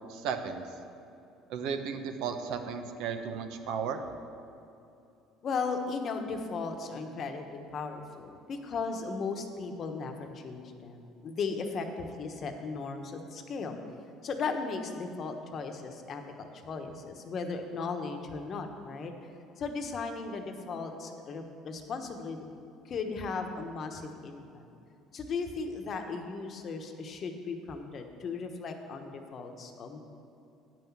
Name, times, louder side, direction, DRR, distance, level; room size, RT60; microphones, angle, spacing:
voice 1, 0.1-0.6 1.5-4.0, right 6 dB, 75° right, 7 dB, 0.9 m, -34 dB
voice 2, 5.4-13.8 14.2-19.3 19.6-22.5 22.8-24.6 25.1-30.0, left 4 dB, 45° left, 5 dB, 1.1 m, -36 dB
8.9 x 6.0 x 7.2 m, 2.7 s
supercardioid pair, 100°, 0 cm